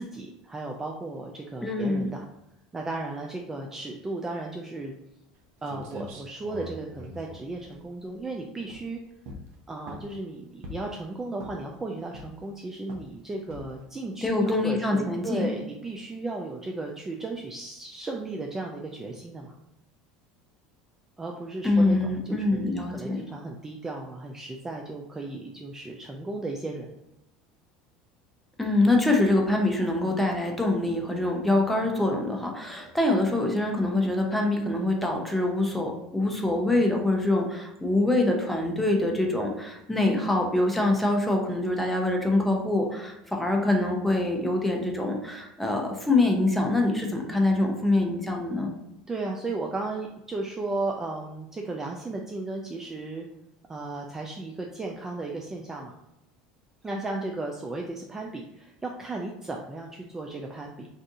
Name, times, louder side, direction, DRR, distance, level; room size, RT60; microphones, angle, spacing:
voice 1, 0.0-2.2 2.7-4.9 5.6-9.0 9.7-19.5 21.2-26.9 49.1-53.3 53.7-55.9 56.8-60.9, right 2 dB, 15° right, 1 dB, 0.4 m, -35 dB
voice 2, 1.6-2.1 14.2-15.5 21.6-23.2 28.6-48.7, left 2 dB, 5° left, 1 dB, 0.7 m, -25 dB
sound 1, 5.4-5.5 5.7-8.3 8.6-8.9 9.2-10.2 10.6-11.0 11.4-11.8 12.1-12.5 12.9-13.1 13.5-13.8, equal, 70° right, 0.6 m, -42 dB
2.7 x 2.5 x 3.6 m, 0.88 s
supercardioid pair, 95°, 2 cm